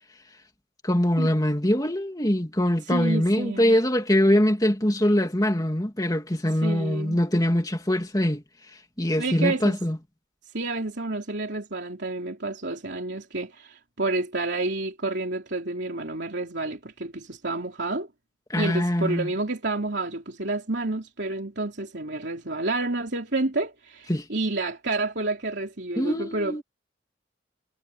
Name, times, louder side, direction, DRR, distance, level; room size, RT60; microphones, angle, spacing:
voice 1, 0.8-8.4 9.0-10.0 18.5-19.3 24.1-24.3 26.0-26.6, left 1 dB, 20° left, 2.5 m, -23 dB
voice 2, 2.8-3.8 6.6-7.2 9.2-9.7 10.5-18.1 18.6-26.6, right 2 dB, 60° right, 3.6 m, -29 dB
head